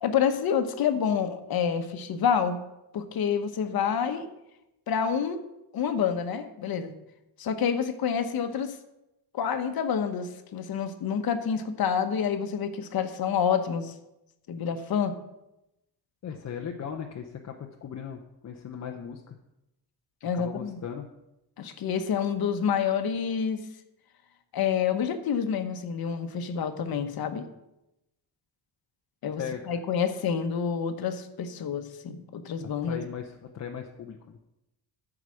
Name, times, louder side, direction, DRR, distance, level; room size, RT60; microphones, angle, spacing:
voice 1, 0.0-2.6 2.9-4.3 4.9-5.4 5.7-6.9 7.4-8.7 9.3-13.9 14.5-15.1 20.2-20.8 21.6-23.6 24.5-27.5 29.2-29.4 29.7-33.0, left 7 dB, 60° left, 8 dB, 1.0 m, -28 dB
voice 2, 16.2-19.4 20.3-21.1 29.4-29.8 32.8-34.4, left 7 dB, 40° left, 3 dB, 0.7 m, -38 dB
12.5 x 4.9 x 6.3 m, 0.91 s
wide cardioid pair, 165°, 42 cm